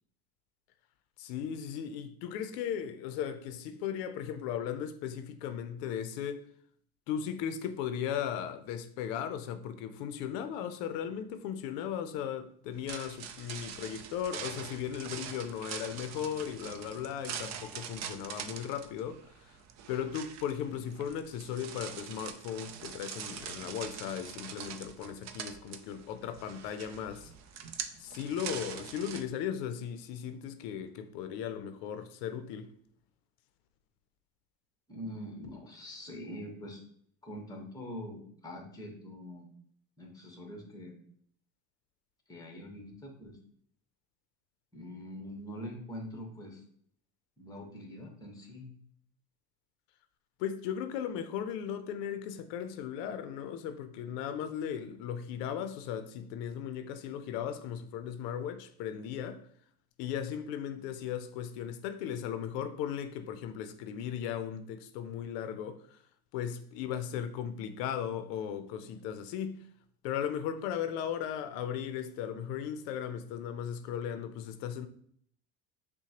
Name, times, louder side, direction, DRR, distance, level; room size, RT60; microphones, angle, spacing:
voice 1, 1.2-6.4 7.1-19.6 19.9-27.3 28.0-32.7 50.4-59.4 60.0-66.0 66.3-69.7 70.0-74.9, left 9 dB, 85° left, 0.6 m, -37 dB
sound 1, 12.7-29.2, right 8 dB, 40° right, 0.4 m, -44 dB
voice 2, 34.9-36.8 37.2-39.5 40.0-41.0 42.3-43.4 44.7-46.6 47.4-48.7, equal, 10° left, 1.1 m, -44 dB
5.7 x 2.2 x 2.9 m
supercardioid pair, 105°, 47 cm